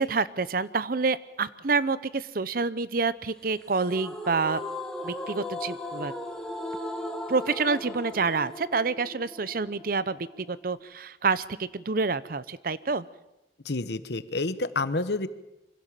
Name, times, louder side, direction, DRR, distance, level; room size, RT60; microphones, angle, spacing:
voice 1, 0.0-4.6 5.0-6.1 7.3-13.1, right 4 dB, 50° right, 17 dB, 0.7 m, -28 dB
sound 1, 3.7-10.8, left 1 dB, 5° left, 1.8 m, -37 dB
voice 2, 13.6-15.3, left 3 dB, 65° left, 13 dB, 1.1 m, -29 dB
24.5 x 16.5 x 7.5 m, 0.95 s
head